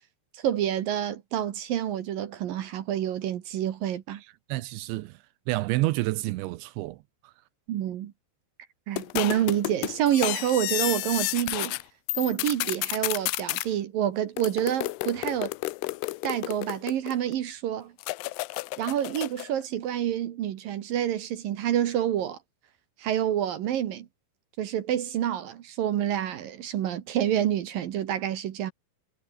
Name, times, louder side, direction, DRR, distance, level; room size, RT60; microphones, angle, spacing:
voice 1, 0.3-4.2 7.7-8.1 8.9-11.8 12.1-15.5 16.2-17.9 18.8-22.4 23.0-24.1 24.6-28.7, right 11 dB, 65° right, 2.5 m, -28 dB
voice 2, 4.2-5.2 5.5-7.3, right 19 dB, 80° right, 2.9 m, -30 dB
sound 1, 9.0-11.8 12.1-13.7 14.4-17.3 18.0-19.5, left 21 dB, 85° left, 2.4 m, -31 dB
omnidirectional pair, 5.4 m